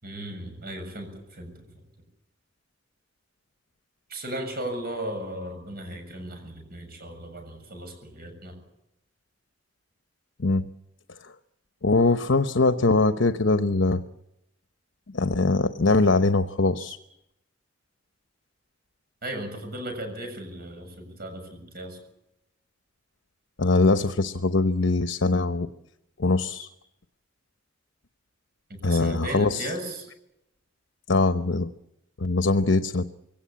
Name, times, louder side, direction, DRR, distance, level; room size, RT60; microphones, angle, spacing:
voice 1, 0.0-1.7 4.1-8.5 19.2-22.0 28.7-30.1, right 1 dB, 55° right, 6 dB, 7.2 m, -36 dB
voice 2, 11.8-14.0 15.1-17.0 23.6-25.7 26.2-26.7 28.8-29.7 31.1-31.7 32.2-33.0, left 3 dB, 75° left, 10 dB, 0.9 m, -22 dB
23.0 x 18.0 x 8.6 m, 0.84 s
head